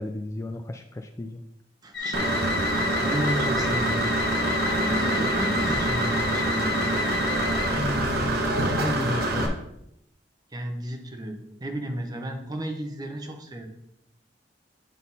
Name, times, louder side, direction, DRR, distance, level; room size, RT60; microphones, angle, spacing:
voice 1, 0.0-1.4 7.7-8.4 8.6-9.6, left 2 dB, 15° left, 5 dB, 0.3 m, -32 dB
voice 2, 1.8-2.3 2.7-4.1 4.6-6.9 10.5-13.7, right 1 dB, 20° right, 4 dB, 0.9 m, -32 dB
sound 1, 1.9-8.0, left 4 dB, 70° left, 1.0 m, -31 dB
Engine / Mechanisms, 2.1-9.5, right 1 dB, 60° right, 1.1 m, -26 dB
9.1 x 3.9 x 4.1 m, 0.80 s
head